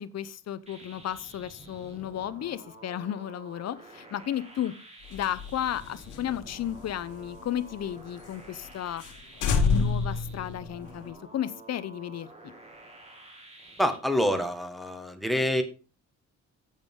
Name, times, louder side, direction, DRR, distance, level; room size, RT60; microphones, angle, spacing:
voice 1, 0.0-4.7 5.1-9.0 9.4-12.5, left 10 dB, 60° left, 16 dB, 0.8 m, -34 dB
sound 1, 0.7-14.0, right 2 dB, 20° right, 2.5 m, -50 dB
sound 2, 5.1-7.9 8.2-8.3 8.7-8.8 9.0-9.2 9.4-11.1, left 4 dB, 80° left, 1.7 m, -29 dB
voice 2, 13.8-15.6, equal, ahead, 6 dB, 1.7 m, -26 dB
8.7 x 8.2 x 3.8 m, 0.34 s
cardioid pair, 90°, 30 cm